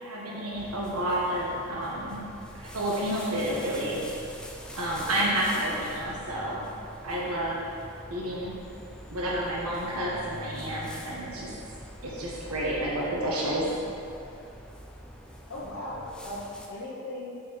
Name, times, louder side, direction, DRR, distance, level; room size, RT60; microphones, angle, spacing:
voice 1, 0.0-2.2 2.6-4.0 4.7-6.6 7.0-7.6 8.1-8.5 9.1-11.5 12.0-13.7, right 1 dB, 80° right, -5 dB, 1.3 m, -30 dB
sound 1, 0.5-16.7, equal, 5° left, 0.6 m, -44 dB
voice 2, 15.5-17.4, left 1 dB, 65° left, -8 dB, 1.1 m, -38 dB
7.5 x 4.6 x 6.0 m, 2.7 s
head